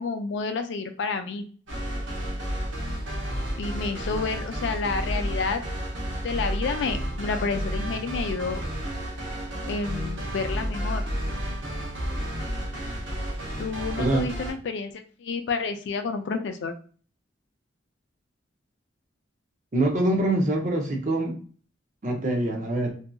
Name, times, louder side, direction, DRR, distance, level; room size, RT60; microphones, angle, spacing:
voice 1, 0.0-1.5 3.6-5.6 6.2-8.6 9.7-11.0 13.6-16.7, left 4 dB, 65° left, 8 dB, 0.3 m, -30 dB
sound 1, 1.7-14.5, equal, 80° right, 0.8 m, -31 dB
voice 2, 14.0-14.3 19.7-21.4 22.0-22.9, right 1 dB, 40° right, 2 dB, 0.6 m, -24 dB
2.6 x 2.5 x 2.2 m, 0.42 s
head